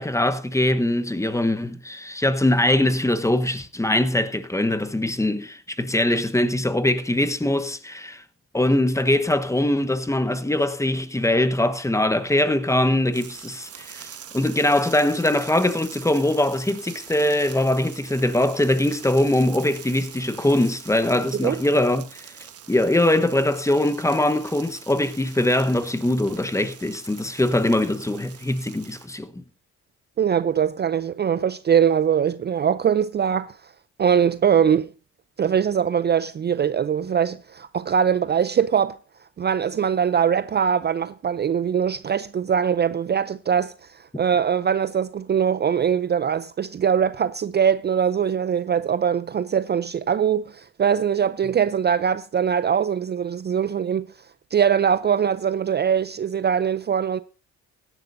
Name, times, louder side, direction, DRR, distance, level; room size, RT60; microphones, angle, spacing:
voice 1, 0.0-8.2 8.5-22.3 22.7-29.4, left 1 dB, 10° left, 1.1 m, -22 dB
sound 1, 13.1-29.1, right 9 dB, 50° right, 1.2 m, -44 dB
voice 2, 30.2-33.7 34.0-34.9 35.4-39.0 39.4-57.2, right 8 dB, 35° right, 0.5 m, -22 dB
16.5 x 10.5 x 2.6 m
cardioid pair, 90°, 30 cm